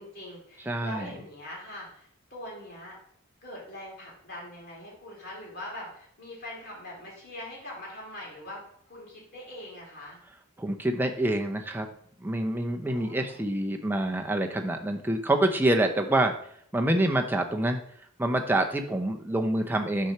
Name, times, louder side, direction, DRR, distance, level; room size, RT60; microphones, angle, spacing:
voice 1, 0.0-3.0 3.4-10.2 12.8-13.4, left 1 dB, 45° left, -3 dB, 2.8 m, -42 dB
voice 2, 0.7-1.1 10.6-11.9 12.2-16.3 16.7-17.8 18.2-20.1, right 1 dB, 10° right, 4 dB, 0.6 m, -26 dB
6.3 x 4.3 x 5.8 m, 0.63 s
head